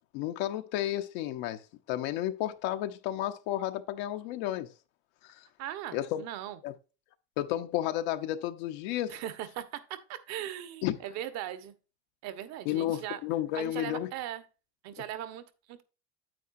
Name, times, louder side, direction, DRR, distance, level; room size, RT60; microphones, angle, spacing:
voice 1, 0.1-1.6 1.9-4.7 5.2-5.5 5.9-6.2 6.6-6.7 7.4-9.2 10.8-11.0 12.6-14.1, left 13 dB, 75° left, 0.9 m, -32 dB
voice 2, 5.6-6.6 9.1-11.7 12.2-13.2 13.5-14.4 14.8-15.8, right 11 dB, 60° right, 1.3 m, -39 dB
9.1 x 8.6 x 2.6 m
cardioid pair, 135°, 32 cm